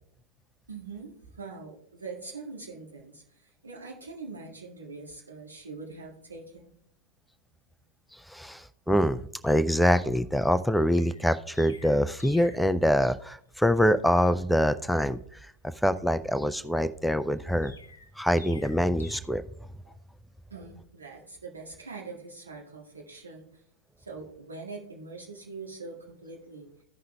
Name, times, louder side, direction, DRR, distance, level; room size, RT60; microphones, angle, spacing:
voice 1, 0.7-6.8 20.5-23.5 24.0-26.7, right 4 dB, 75° right, -2 dB, 1.9 m, -43 dB
voice 2, 8.1-15.5 15.8-17.7 18.2-19.4, equal, ahead, 12 dB, 0.3 m, -25 dB
Chirp tweet, 10.9-12.7 17.6-19.2, left 3 dB, 75° left, 0.9 m, -50 dB
15.5 x 5.6 x 2.2 m, 0.68 s
figure-of-eight pair, 90°, 0 cm